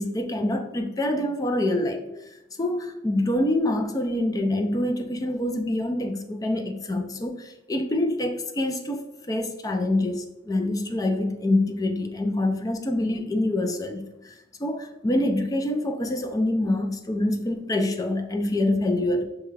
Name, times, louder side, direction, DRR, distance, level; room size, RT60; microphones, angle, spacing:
voice 1, 0.0-2.0 2.6-9.0 9.3-19.2, left 1 dB, 20° left, 6 dB, 0.4 m, -26 dB
6.5 x 2.3 x 3.2 m, 0.93 s
head